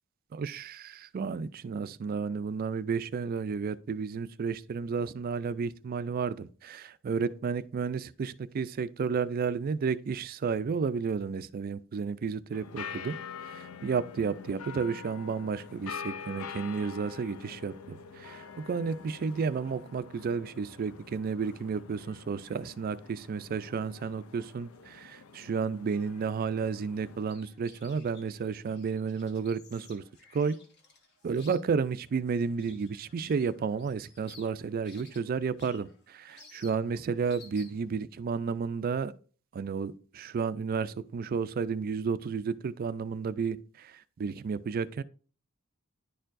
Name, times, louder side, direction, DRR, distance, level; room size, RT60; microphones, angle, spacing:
voice 1, 0.3-13.1 13.4-30.0 30.3-30.6 31.2-39.1 39.5-45.0, right 5 dB, 45° right, 0.3 m, -32 dB
sound 1, 12.5-27.2, left 6 dB, 80° left, 0.5 m, -45 dB
sound 2, 27.1-37.9, left 3 dB, 55° left, 1.3 m, -57 dB
10.5 x 4.5 x 2.5 m
head